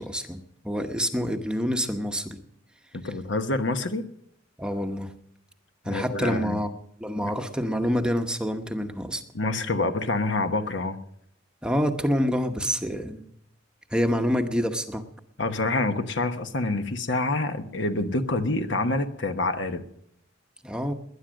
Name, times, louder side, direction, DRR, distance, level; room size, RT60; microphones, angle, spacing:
voice 1, 0.0-2.4 4.6-5.1 5.8-6.7 7.0-9.2 11.6-13.3 13.9-15.0 20.6-20.9, equal, 5° right, 5 dB, 0.9 m, -27 dB
voice 2, 3.0-4.0 5.8-6.6 9.3-11.0 15.4-19.8, left 2 dB, 65° left, 8 dB, 1.2 m, -27 dB
19.5 x 10.5 x 6.3 m, 0.72 s
head